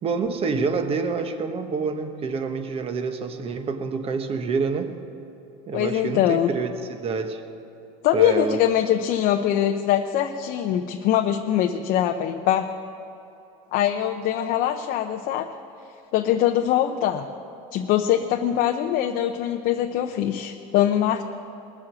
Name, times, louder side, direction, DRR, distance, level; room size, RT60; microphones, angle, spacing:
voice 1, 0.0-5.0 5.7-7.4 8.1-8.6, right 4 dB, 35° right, 7 dB, 1.1 m, -27 dB
voice 2, 5.7-6.5 8.0-12.7 13.7-15.5 16.1-17.3 17.7-21.2, left 11 dB, 55° left, 4 dB, 0.7 m, -22 dB
21.5 x 7.5 x 6.2 m, 3.0 s
cardioid pair, 130°, 18 cm